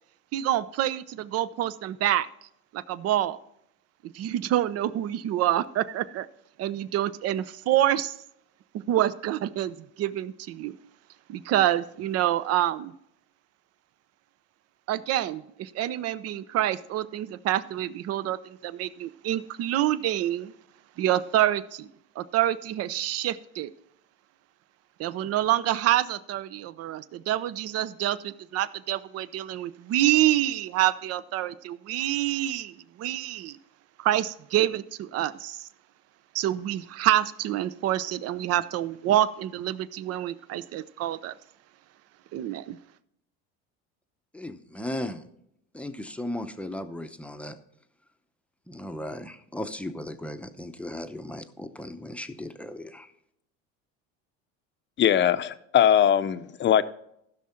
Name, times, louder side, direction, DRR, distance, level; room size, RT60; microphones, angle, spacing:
voice 1, 0.3-2.3 2.7-3.4 4.1-6.3 6.6-8.1 8.7-10.7 11.3-12.9 14.9-20.5 21.0-21.9 22.2-23.7 25.0-33.6 34.0-35.7 36.3-41.3 42.3-42.8, right 13 dB, 50° right, 17 dB, 0.7 m, -27 dB
voice 2, 44.3-45.2 45.7-47.6 48.7-53.1, left 1 dB, 5° left, 8 dB, 0.8 m, -36 dB
voice 3, 55.0-56.8, left 10 dB, 35° left, 13 dB, 0.7 m, -21 dB
15.0 x 6.4 x 4.4 m, 0.76 s
supercardioid pair, 115°, 31 cm